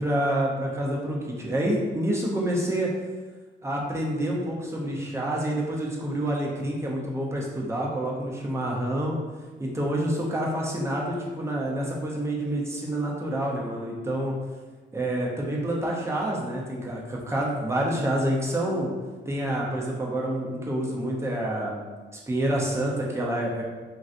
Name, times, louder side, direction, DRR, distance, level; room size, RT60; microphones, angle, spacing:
voice 1, 0.0-2.9 3.6-9.2 9.6-14.4 14.9-18.9 19.3-21.8 22.1-23.6, right 1 dB, 15° right, -2 dB, 0.7 m, -28 dB
3.1 x 2.6 x 2.5 m, 1.3 s
cardioid pair, 90°, 20 cm